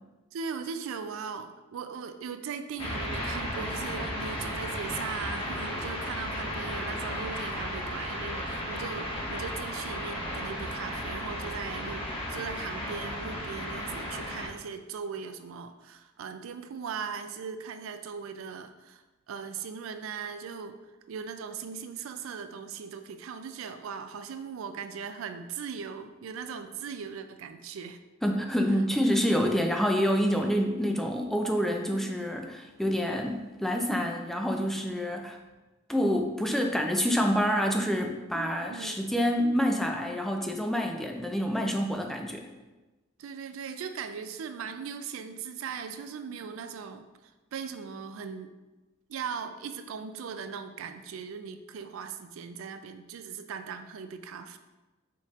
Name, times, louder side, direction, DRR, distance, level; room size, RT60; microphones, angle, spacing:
voice 1, 0.3-20.8 21.1-28.0 38.3-39.0 43.2-47.1 47.5-48.5 49.1-54.6, right 6 dB, 80° right, 9 dB, 0.4 m, -39 dB
sound 1, 2.8-14.5, equal, 20° left, 1.0 m, -34 dB
voice 2, 28.2-35.4 35.9-42.5, equal, ahead, 3 dB, 0.3 m, -27 dB
5.3 x 4.1 x 2.4 m, 1.1 s
head